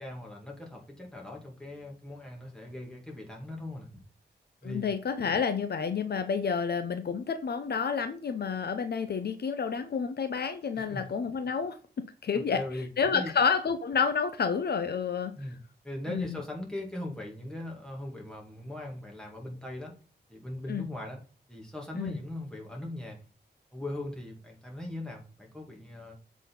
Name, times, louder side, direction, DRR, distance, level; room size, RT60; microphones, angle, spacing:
voice 1, 0.0-4.0 4.6-4.9 10.7-11.0 12.3-13.3 15.3-15.6 15.8-19.9 20.3-21.2 21.5-23.2 23.7-26.1, left 1 dB, 5° left, -1 dB, 2.3 m, -39 dB
voice 2, 4.6-11.8 12.2-12.6 13.0-15.3 16.1-16.3 20.7-20.8 21.9-22.2, left 6 dB, 65° left, 8 dB, 0.7 m, -29 dB
7.4 x 4.2 x 5.4 m, 0.36 s
wide cardioid pair, 140°, 18 cm